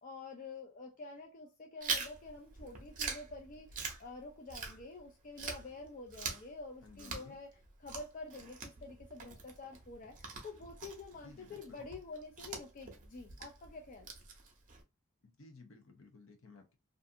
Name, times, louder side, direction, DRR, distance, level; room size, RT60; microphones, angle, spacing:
voice 1, 0.0-7.5 7.8-14.1, left 3 dB, 35° left, 0.4 m, -48 dB
Chewing mastication, 1.8-5.1 5.4-14.8, right 5 dB, 35° right, 0.6 m, -44 dB
voice 2, 6.8-7.4 11.2-11.8 15.2-16.8, left 3 dB, 60° left, 0.7 m, -56 dB
2.5 x 2.4 x 2.5 m
head